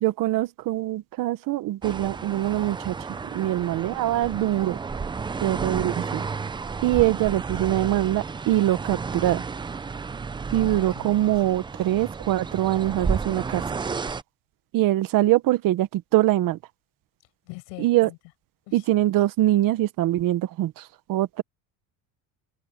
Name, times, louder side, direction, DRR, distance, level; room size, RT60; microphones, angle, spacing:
voice 1, 0.0-2.9 3.3-4.8 5.4-6.2 6.8-9.4 10.5-13.6 14.7-16.6 17.8-18.1 18.7-21.4, right 15 dB, 55° right, 1.3 m, -23 dB
sound 1, 1.8-14.2, right 5 dB, 10° right, 0.5 m, -32 dB
voice 2, 10.6-11.3 17.5-18.2 18.7-18.8, left 30 dB, 85° left, 6.9 m, -42 dB
cardioid pair, 135°, 40 cm